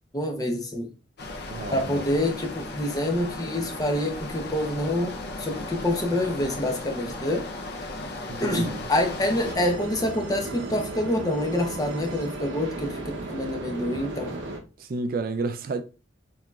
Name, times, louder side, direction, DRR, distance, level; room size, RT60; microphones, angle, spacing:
voice 1, 0.1-0.9 1.7-5.1 5.4-7.4 8.4-14.4, left 1 dB, 20° left, 0.8 m, -27 dB
sound 1, 1.2-9.6, left 2 dB, 55° left, 0.6 m, -36 dB
voice 2, 1.5-2.0 8.3-8.9 14.8-15.8, right 3 dB, 50° right, 0.4 m, -30 dB
sound 2, 9.4-14.6, right 2 dB, 75° right, 0.8 m, -35 dB
6.7 x 2.9 x 2.3 m
head